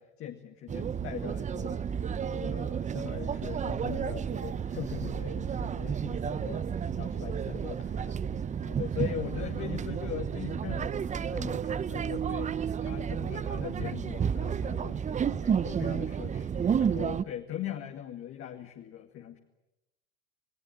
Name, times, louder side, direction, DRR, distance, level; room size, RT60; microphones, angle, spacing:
voice 1, 0.0-1.9 2.2-6.7 7.0-8.2 8.6-19.4, left 10 dB, 50° left, 3 dB, 2.2 m, -40 dB
sound 1, 0.7-17.2, right 7 dB, 25° right, 0.8 m, -31 dB
28.0 x 18.5 x 9.3 m, 0.91 s
hypercardioid pair, 85°, 29 cm